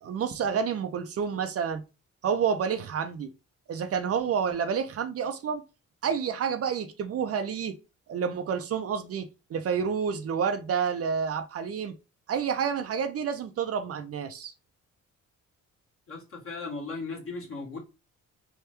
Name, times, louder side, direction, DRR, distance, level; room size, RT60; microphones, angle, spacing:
voice 1, 0.0-1.8 2.2-3.3 3.7-5.6 6.0-7.8 8.1-11.9 12.3-14.5, right 7 dB, 50° right, 0.5 m, -29 dB
voice 2, 16.1-17.8, left 3 dB, 45° left, 1.5 m, -37 dB
3.4 x 2.2 x 2.9 m
cardioid pair, 90°, 30 cm